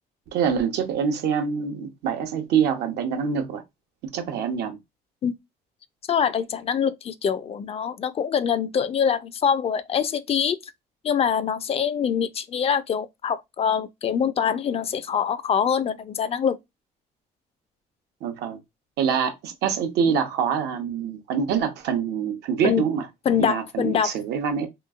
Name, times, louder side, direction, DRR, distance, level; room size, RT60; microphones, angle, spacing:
voice 1, 0.3-3.6 4.1-4.8 18.2-18.6 19.0-23.1 23.4-24.7, right 7 dB, 75° right, 0.8 m, -25 dB
voice 2, 6.1-10.6 11.0-16.6 22.6-22.8 23.3-24.2, left 7 dB, 35° left, 0.4 m, -24 dB
3.0 x 2.6 x 2.3 m
cardioid pair, 110°, 17 cm